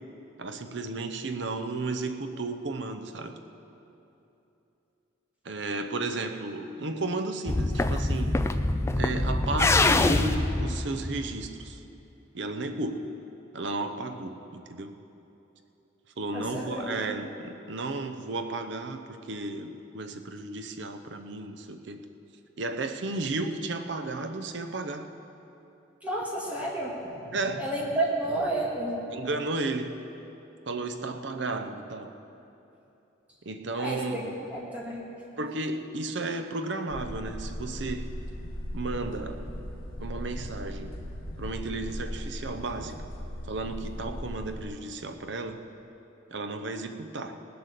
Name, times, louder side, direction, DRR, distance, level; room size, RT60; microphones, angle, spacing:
voice 1, 0.4-3.4 5.4-8.4 9.0-11.8 12.3-13.1 13.5-15.0 16.2-22.0 22.6-25.1 27.3-27.7 29.1-30.0 30.7-32.1 33.5-34.3 34.6-34.7 35.4-38.2 38.7-39.4 40.0-41.0 41.4-43.0 43.5-45.6 46.3-47.4, right 2 dB, 60° right, 7 dB, 0.7 m, -33 dB
sound 1, 7.5-11.7, left 2 dB, 15° left, 0.3 m, -25 dB
voice 2, 16.3-16.9 26.0-29.0 30.8-30.9 33.8-34.2 34.5-35.0 35.7-35.8, right 1 dB, 5° right, -4 dB, 2.1 m, -31 dB
sound 2, 36.9-44.6, equal, 80° left, 1.3 m, -38 dB
19.0 x 7.9 x 6.7 m, 2.9 s
head